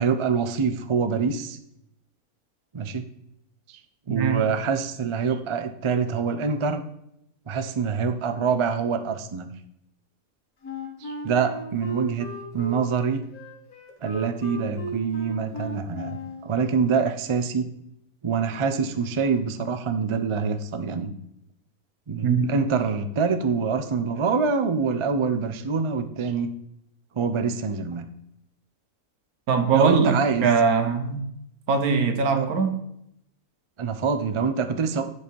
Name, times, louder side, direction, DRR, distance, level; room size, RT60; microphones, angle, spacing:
voice 1, 0.0-1.6 2.7-3.0 4.1-6.8 7.5-9.5 11.0-12.3 12.5-13.2 14.0-16.2 16.4-17.7 18.2-21.1 22.1-26.5 27.2-28.0 29.7-30.5 32.3-32.5 33.8-35.0, right 5 dB, 50° right, 9 dB, 0.3 m, -25 dB
voice 2, 4.1-4.5 22.2-22.6 29.5-30.2 30.4-31.2 31.7-32.8, right 5 dB, 85° right, 7 dB, 1.5 m, -22 dB
Wind instrument woodwind instrument, 10.6-16.5, right 1 dB, 80° left, 2.1 m, -36 dB
10.0 x 4.9 x 4.5 m, 0.77 s
omnidirectional pair, 1.5 m